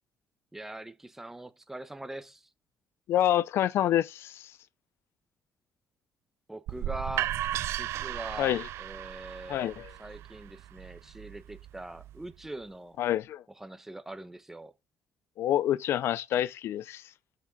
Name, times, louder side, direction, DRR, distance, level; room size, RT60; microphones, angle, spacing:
voice 1, 0.5-2.5 6.5-7.3 7.8-9.7 10.0-13.0 13.6-14.7, right 1 dB, 10° right, 1.0 m, -42 dB
voice 2, 3.1-4.5 8.4-8.7 9.5-9.9 13.0-13.4 15.4-17.0, left 12 dB, 65° left, 0.5 m, -27 dB
sound 1, 6.7-12.5, right 13 dB, 80° right, 0.6 m, -36 dB
13.0 x 8.5 x 3.8 m
cardioid pair, 145°, 4 cm